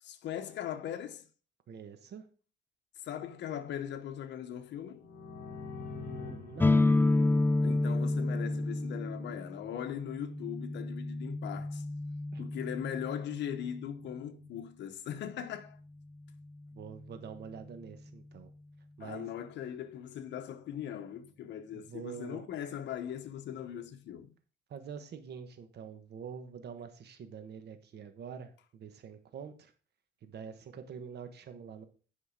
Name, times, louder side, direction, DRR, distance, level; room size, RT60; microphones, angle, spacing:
voice 1, 0.0-1.3 3.0-5.1 7.6-11.9 12.4-15.8 19.0-24.3, left 10 dB, 70° left, 0.9 m, -40 dB
voice 2, 1.7-2.3 5.9-6.8 12.3-12.5 16.7-18.5 19.0-19.3 21.7-22.5 24.7-29.7 30.2-31.9, right 7 dB, 60° right, 1.3 m, -46 dB
sound 1, 5.0-8.7, left 4 dB, 45° left, 2.3 m, -46 dB
sound 2, 6.6-14.2, left 2 dB, 10° left, 0.5 m, -30 dB
9.8 x 5.2 x 5.0 m
cardioid pair, 115°, 19 cm